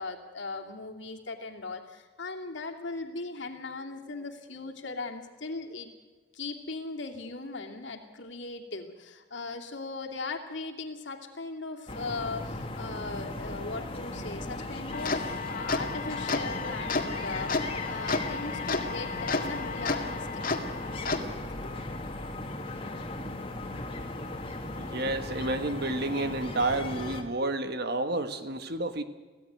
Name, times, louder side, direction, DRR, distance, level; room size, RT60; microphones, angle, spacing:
voice 1, 0.0-5.9 6.3-20.9 21.6-21.7, left 3 dB, 60° left, 2 dB, 2.6 m, -39 dB
sound 1, 11.9-27.2, left 2 dB, 25° left, 2.3 m, -37 dB
sound 2, 14.9-21.2, left 3 dB, 40° left, 2.1 m, -32 dB
voice 2, 24.7-29.0, right 2 dB, 50° right, 9 dB, 1.5 m, -30 dB
24.5 x 16.5 x 9.3 m, 1.4 s
head